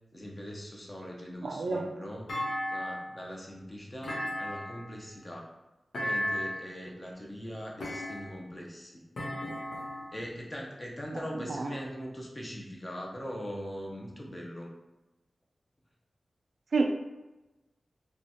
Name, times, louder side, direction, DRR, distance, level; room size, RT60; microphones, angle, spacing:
voice 1, 0.1-2.3 2.7-5.5 6.0-9.0 10.1-14.7, equal, 20° left, -1 dB, 0.7 m, -41 dB
voice 2, 1.4-1.9 11.4-11.7 16.7-17.0, right 3 dB, 65° right, 4 dB, 0.3 m, -29 dB
Thump thud, 2.3-3.2 4.0-4.9 5.9-6.7 7.8-8.5 9.2-10.2, left 1 dB, 90° left, 0.9 m, -35 dB
3.1 x 2.3 x 4.1 m, 1.1 s
wide cardioid pair, 105°, 0 cm